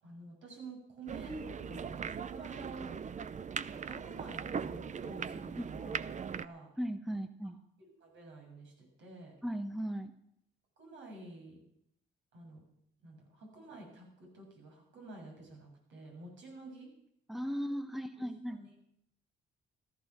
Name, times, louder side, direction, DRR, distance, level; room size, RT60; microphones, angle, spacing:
voice 1, 0.0-1.3 1.6-2.9 3.8-6.7 7.8-9.3 10.8-11.6 12.3-12.6 13.0-16.9 18.2-18.7, right 2 dB, 75° right, 0 dB, 7.4 m, -50 dB
sound 1, 1.1-6.5, right 6 dB, 35° right, 0.7 m, -40 dB
voice 2, 5.6-5.9 6.8-7.6 9.4-10.1 17.3-18.6, equal, ahead, 8 dB, 1.1 m, -37 dB
14.0 x 14.0 x 6.0 m, 0.75 s
cardioid pair, 90°, 20 cm